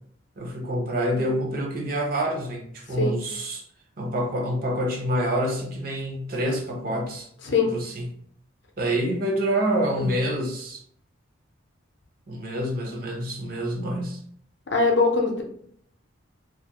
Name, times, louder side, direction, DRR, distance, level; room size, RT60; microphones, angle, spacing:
voice 1, 0.4-3.6 4.0-7.3 7.6-8.1 8.8-10.8 12.3-14.2, equal, 45° right, 1 dB, 0.5 m, -27 dB
voice 2, 7.4-7.8 10.0-10.1 14.7-15.4, left 3 dB, 60° left, 1 dB, 0.5 m, -22 dB
2.3 x 2.1 x 2.8 m, 0.65 s
head